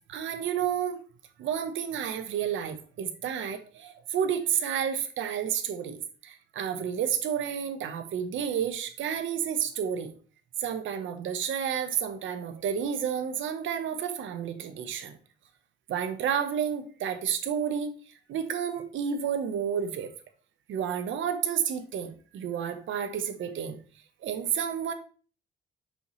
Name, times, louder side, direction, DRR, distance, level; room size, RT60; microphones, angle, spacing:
voice 1, 0.1-1.0 1.4-10.1 10.6-15.2 15.9-20.1 20.7-23.8 24.2-24.9, right 8 dB, 75° right, 8 dB, 1.1 m, -31 dB
6.9 x 5.8 x 3.2 m, 0.39 s
cardioid pair, 90°, 20 cm